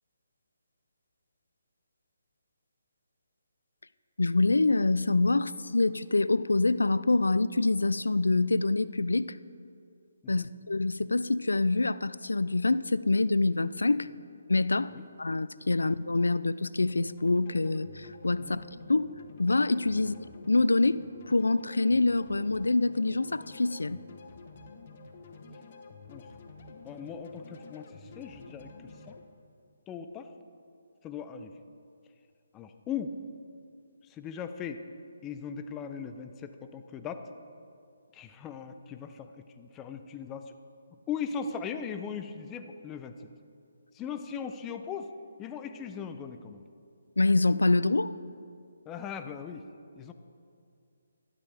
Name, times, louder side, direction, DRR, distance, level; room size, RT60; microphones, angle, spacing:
voice 1, 4.2-9.4 10.3-14.1 14.5-14.9 15.2-19.1 19.4-20.1 20.5-21.0 21.3-24.0 47.2-48.1, left 3 dB, 90° left, 17 dB, 0.3 m, -26 dB
sound 1, 16.8-29.2, left 4 dB, 45° left, 1.1 m, -49 dB
voice 2, 26.8-28.7 29.1-29.2 29.9-30.3 31.0-31.5 32.5-33.1 34.1-34.8 35.2-37.2 38.1-40.4 41.1-43.1 43.9-45.1 45.4-46.6 48.9-49.6 50.0-50.1, left 7 dB, 15° left, 8 dB, 0.5 m, -38 dB
12.5 x 12.5 x 3.4 m, 2.4 s
figure-of-eight pair, 150°, 0 cm